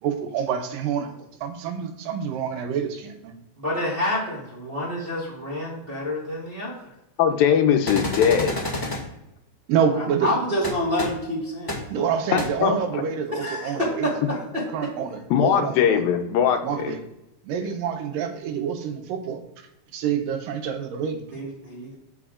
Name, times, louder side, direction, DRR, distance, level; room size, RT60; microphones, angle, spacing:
voice 1, 0.0-1.1 1.4-3.3 9.7-10.3 11.9-14.1 14.7-16.0 16.6-17.0 17.4-19.4 19.9-21.2, right 7 dB, 75° right, 6 dB, 2.5 m, -27 dB
voice 2, 3.6-6.8 10.0-12.0 13.3-14.9 21.3-21.9, left 1 dB, 40° right, -6 dB, 0.8 m, -28 dB
voice 3, 7.2-8.6 12.3-13.0 15.3-16.9, left 8 dB, 80° left, 5 dB, 2.6 m, -21 dB
sound 1, 7.9-9.0 10.6-10.7 11.0-11.1 11.7-11.8 12.4-12.5, left 1 dB, 10° left, 1.3 m, -28 dB
15.0 x 5.1 x 2.5 m, 0.87 s
omnidirectional pair, 4.1 m